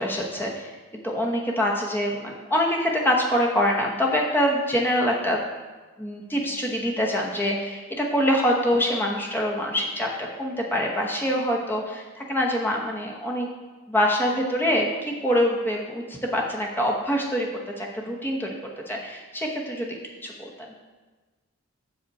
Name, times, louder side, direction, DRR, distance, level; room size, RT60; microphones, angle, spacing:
voice 1, 0.0-5.4 6.0-13.5 13.9-17.5 17.8-18.6 18.9-20.5, equal, 10° left, -1 dB, 1.0 m, -25 dB
7.9 x 6.0 x 4.2 m, 1.3 s
head